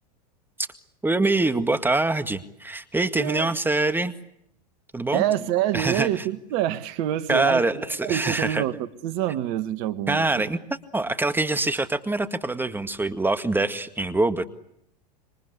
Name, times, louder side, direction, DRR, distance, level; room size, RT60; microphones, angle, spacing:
voice 1, 1.0-4.1 4.9-5.2 5.7-6.2 7.3-8.6 10.1-10.6 10.9-14.5, right 2 dB, 10° right, 1.9 m, -24 dB
voice 2, 3.1-3.5 5.1-10.4 10.9-11.1, right 12 dB, 55° right, 1.8 m, -27 dB
27.0 x 26.5 x 8.3 m
hypercardioid pair, 90°, 21 cm